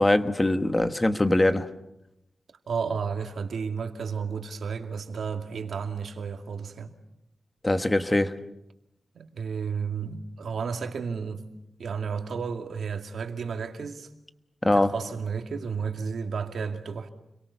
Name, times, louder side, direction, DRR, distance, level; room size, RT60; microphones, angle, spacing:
voice 1, 0.0-1.6 7.6-8.3 14.6-14.9, left 1 dB, 15° left, 1.3 m, -22 dB
voice 2, 2.7-6.9 9.1-11.5 11.8-14.1 14.6-17.1, right 6 dB, 90° right, 2.3 m, -32 dB
30.0 x 23.0 x 7.0 m
wide cardioid pair, 135°, 0 cm